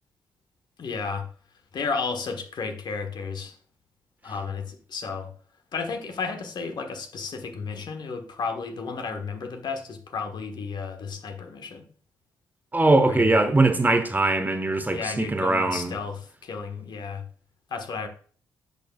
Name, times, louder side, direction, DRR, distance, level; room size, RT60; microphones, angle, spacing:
voice 1, 0.8-1.3 1.7-3.6 4.2-5.3 5.7-11.8 13.0-13.4 14.9-17.2 17.7-18.1, left 5 dB, 50° left, 1.3 m, -33 dB
voice 2, 12.7-16.0, right 2 dB, 20° right, 1.1 m, -21 dB
10.0 x 6.8 x 2.3 m
figure-of-eight pair, 40°, 9 cm